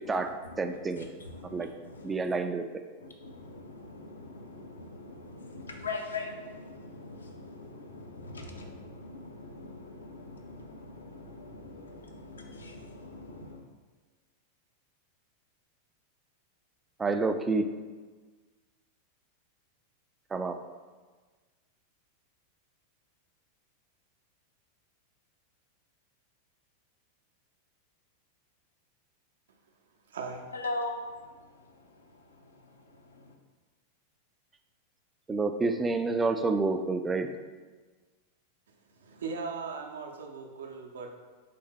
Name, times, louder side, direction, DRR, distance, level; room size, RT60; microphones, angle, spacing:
voice 1, 0.0-2.2 3.0-13.6 30.5-33.3, left 2 dB, 75° left, 2 dB, 0.6 m, -42 dB
voice 2, 0.6-1.1 1.5-1.7 2.0-2.6 17.0-17.7 20.3-20.6 35.3-37.3, right 3 dB, 15° right, 7 dB, 0.3 m, -28 dB
voice 3, 30.1-30.5 38.9-41.2, right 4 dB, 65° right, 2 dB, 0.6 m, -39 dB
4.2 x 3.4 x 3.3 m, 1.4 s
figure-of-eight pair, 90°, 0 cm